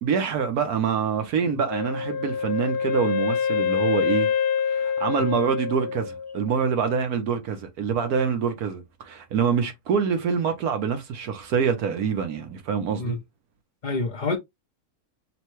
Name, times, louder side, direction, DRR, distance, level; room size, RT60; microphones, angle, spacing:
voice 1, 0.0-4.3 4.7-13.2, right 6 dB, 70° right, 1.3 m, -25 dB
Wind instrument woodwind instrument, 1.7-6.5, left 7 dB, 85° left, 1.2 m, -26 dB
voice 2, 13.8-14.4, left 3 dB, 55° left, 0.5 m, -28 dB
5.7 x 2.2 x 3.0 m
omnidirectional pair, 1.6 m